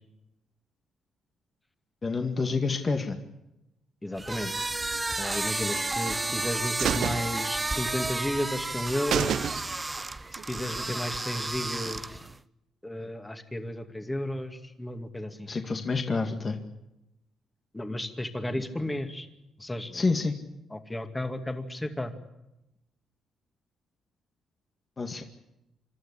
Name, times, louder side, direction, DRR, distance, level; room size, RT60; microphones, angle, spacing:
voice 1, 2.0-3.2 15.5-16.6 19.9-20.4 25.0-25.2, left 4 dB, 30° left, 4 dB, 2.0 m, -28 dB
voice 2, 4.0-4.5 5.2-9.4 10.3-12.2 12.8-15.5 17.7-19.3 19.6-20.0 20.7-22.1, left 1 dB, 10° left, 6 dB, 2.4 m, -33 dB
sound 1, 4.2-12.4, right 2 dB, 15° right, 0.7 m, -32 dB
sound 2, 5.7-6.4 6.8-8.1 8.4-8.5 8.8-8.9 9.1-10.0 10.4-10.5, right 9 dB, 70° right, 0.9 m, -30 dB
27.0 x 13.0 x 10.0 m, 0.93 s
cardioid pair, 90°, 0 cm